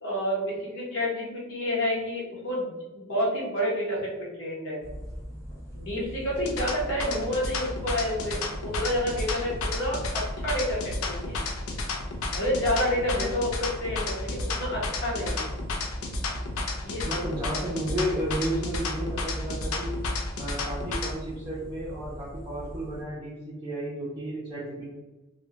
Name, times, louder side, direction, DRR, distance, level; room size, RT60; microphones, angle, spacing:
voice 1, 0.0-4.8 5.7-11.4 12.3-13.5 13.8-15.4 16.8-17.2, equal, 65° left, -4 dB, 0.9 m, -29 dB
sound 1, 4.8-23.0, equal, 15° left, 0.8 m, -40 dB
sound 2, 6.4-21.1, left 2 dB, 80° left, 0.4 m, -32 dB
voice 2, 17.0-20.0 20.4-24.9, right 1 dB, 20° right, -7 dB, 0.5 m, -33 dB
2.2 x 2.0 x 2.8 m, 1.1 s
head